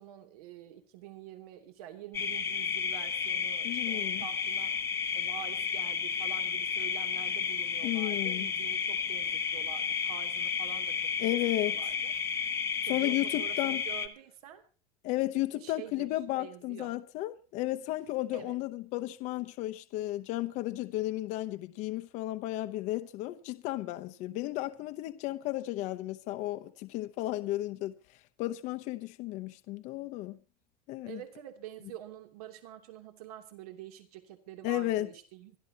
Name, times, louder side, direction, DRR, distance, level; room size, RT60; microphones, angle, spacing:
voice 1, 0.0-4.7 5.1-10.9 11.2-12.1 12.9-14.6 15.5-16.1 16.4-16.9 18.3-18.6 31.0-35.6, right 12 dB, 75° right, 3.0 m, -47 dB
sound 1, 2.1-14.1, left 6 dB, 15° left, 1.0 m, -32 dB
voice 2, 3.6-4.3 7.8-8.5 11.2-11.8 12.9-13.8 15.0-27.9 28.4-30.4 30.9-31.2 34.6-35.1, left 16 dB, 40° left, 0.8 m, -33 dB
25.0 x 12.5 x 2.9 m
supercardioid pair, 170°, 19 cm